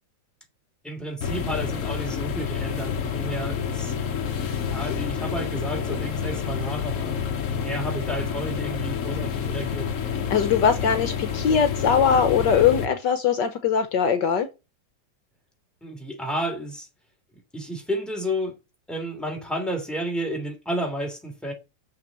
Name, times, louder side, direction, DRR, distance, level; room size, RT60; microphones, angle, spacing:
voice 1, 0.8-3.9 4.6-7.2 7.5-9.9 15.8-16.9 17.5-18.5 18.9-21.5, equal, ahead, 2.9 m, -31 dB
sound 1, 1.2-12.9, left 7 dB, 50° left, 1.2 m, -29 dB
voice 2, 10.3-14.5, left 7 dB, 65° left, 1.5 m, -21 dB
6.9 x 6.4 x 7.4 m
omnidirectional pair, 2.1 m